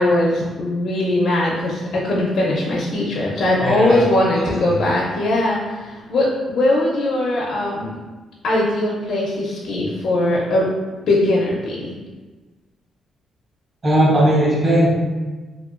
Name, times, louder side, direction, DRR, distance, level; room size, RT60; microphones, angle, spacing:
voice 1, 0.0-8.0 8.4-10.7 11.1-11.9, left 1 dB, 65° left, -4 dB, 0.4 m, -20 dB
voice 2, 3.6-4.0 13.8-14.9, right 1 dB, 30° right, -5 dB, 0.5 m, -16 dB
2.8 x 2.1 x 2.4 m, 1.2 s
cardioid pair, 105°, 0 cm